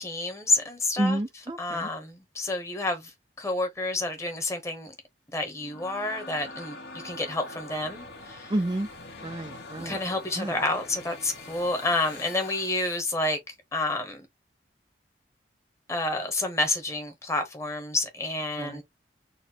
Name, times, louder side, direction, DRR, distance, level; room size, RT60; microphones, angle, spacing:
voice 1, 0.0-1.2 1.6-3.1 3.4-4.9 5.3-8.5 9.8-14.2 15.9-18.8, left 2 dB, 15° left, 1.0 m, -29 dB
voice 2, 1.0-1.9 8.5-8.9 9.2-10.0 10.4-10.6 18.6-18.8, right 1 dB, 25° right, 0.4 m, -30 dB
sound 1, 5.4-13.1, left 2 dB, 65° left, 1.2 m, -44 dB
4.2 x 2.1 x 4.2 m
head